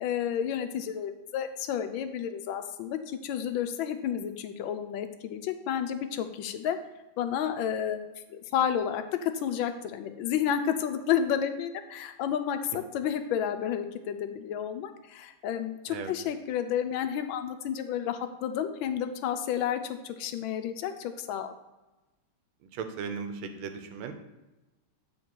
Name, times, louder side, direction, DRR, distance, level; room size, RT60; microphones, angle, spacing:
voice 1, 0.0-6.8 7.2-8.0 8.3-21.5, left 9 dB, 75° left, 8 dB, 1.3 m, -31 dB
voice 2, 22.7-24.1, right 6 dB, 90° right, 7 dB, 1.6 m, -37 dB
8.7 x 3.6 x 4.4 m, 1.1 s
omnidirectional pair, 2.3 m